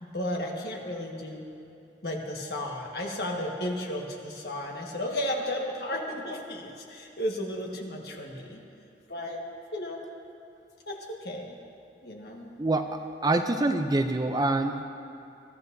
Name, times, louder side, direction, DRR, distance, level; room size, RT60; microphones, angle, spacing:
voice 1, 0.0-1.5 2.0-8.6 9.1-9.4 9.7-10.1 10.9-11.6 12.0-12.5, left 1 dB, 60° left, 0 dB, 1.5 m, -34 dB
voice 2, 12.6-14.8, right 2 dB, 20° right, 6 dB, 0.4 m, -26 dB
21.0 x 12.5 x 2.7 m, 2.6 s
head